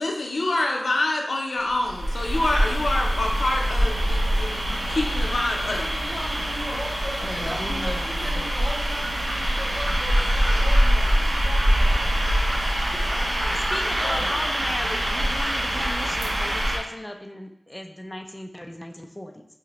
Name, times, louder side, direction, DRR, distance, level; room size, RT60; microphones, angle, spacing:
voice 1, 0.0-5.8 14.0-14.4, left 2 dB, 80° left, 1 dB, 0.5 m, -26 dB
sound 1, 1.7-16.8, equal, 55° right, 0.7 m, -24 dB
voice 2, 5.6-12.4 13.0-13.7, equal, 5° right, -5 dB, 1.4 m, -37 dB
voice 3, 7.2-8.1 8.3-8.5 13.7-19.5, left 1 dB, 15° left, 3 dB, 0.4 m, -36 dB
4.7 x 2.1 x 2.9 m, 0.77 s
cardioid pair, 45°, 0 cm